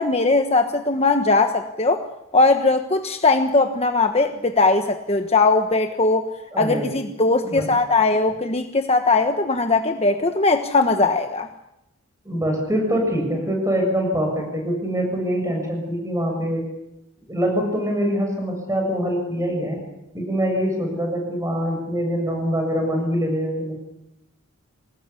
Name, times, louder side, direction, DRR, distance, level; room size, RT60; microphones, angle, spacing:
voice 1, 0.0-2.0 2.3-6.3 6.6-11.5, left 3 dB, 30° left, 6 dB, 1.2 m, -19 dB
voice 2, 6.5-6.9 7.4-7.7 12.3-16.6 17.3-19.8 20.1-23.7, equal, 15° right, 2 dB, 7.2 m, -24 dB
26.0 x 19.5 x 8.5 m, 0.86 s
head